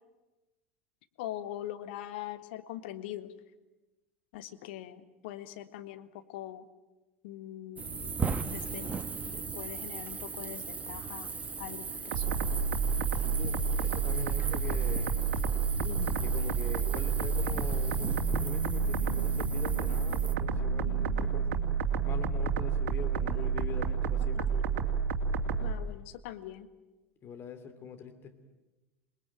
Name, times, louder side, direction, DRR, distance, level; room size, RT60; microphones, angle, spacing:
voice 1, 1.2-3.3 4.3-6.6 7.2-8.2 8.5-8.9 9.2-11.3 11.6-12.5 24.3-24.4 25.6-26.7, left 13 dB, 55° left, 11 dB, 1.6 m, -42 dB
sound 1, 7.8-20.3, right 5 dB, 20° right, 1.5 m, -38 dB
sound 2, 12.1-25.7, right 6 dB, 55° right, 2.8 m, -30 dB
voice 2, 13.1-15.3 15.8-21.7 22.0-24.7 27.2-28.4, left 5 dB, 35° left, 8 dB, 3.1 m, -43 dB
sound 3, 17.1-23.5, right 5 dB, 90° right, 1.9 m, -43 dB
28.0 x 20.5 x 9.0 m, 1.1 s
figure-of-eight pair, 75°, 7 cm